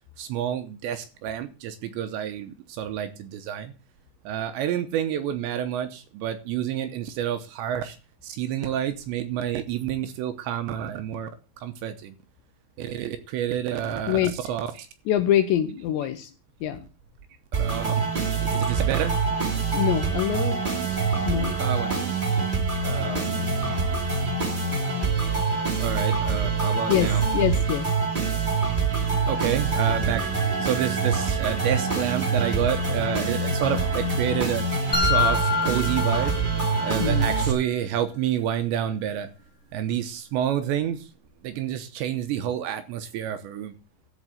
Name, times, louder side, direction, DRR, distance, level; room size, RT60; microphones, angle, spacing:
voice 1, 0.2-3.7 4.2-8.0 8.2-11.3 11.6-12.1 12.8-14.8 17.6-18.0 18.5-19.1 21.3-22.1 22.8-23.9 25.8-27.2 29.3-30.3 30.6-34.6 35.0-36.3 36.8-39.3 39.7-41.1 41.4-43.8, right 10 dB, 75° right, 9 dB, 2.9 m, -29 dB
voice 2, 15.1-16.3 16.6-16.9 19.7-20.6 21.2-21.6 26.9-27.9 37.0-37.3, left 11 dB, 80° left, 9 dB, 2.7 m, -24 dB
sound 1, 17.5-37.5, right 4 dB, 30° right, 0.8 m, -25 dB
sound 2, 28.9-39.1 39.4-39.5, right 2 dB, 50° right, 1.7 m, -40 dB
sound 3, 34.9-36.9, left 6 dB, 30° left, 1.2 m, -26 dB
14.0 x 4.7 x 8.0 m, 0.34 s
omnidirectional pair, 5.7 m